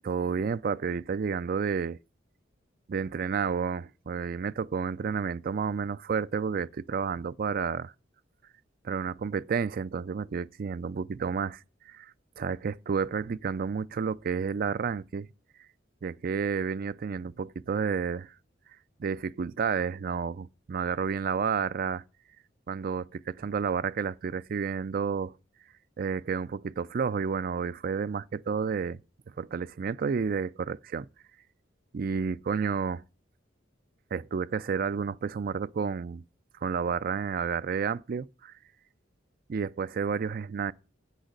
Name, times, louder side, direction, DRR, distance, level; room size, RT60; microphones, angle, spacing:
voice 1, 0.0-2.0 2.9-7.9 8.8-15.3 16.0-18.3 19.0-22.0 22.7-25.3 26.0-29.0 29.4-31.1 31.9-33.0 34.1-36.2 36.6-38.5 39.5-40.7, right 6 dB, 50° right, 0.4 m, -31 dB
8.0 x 6.3 x 6.6 m
head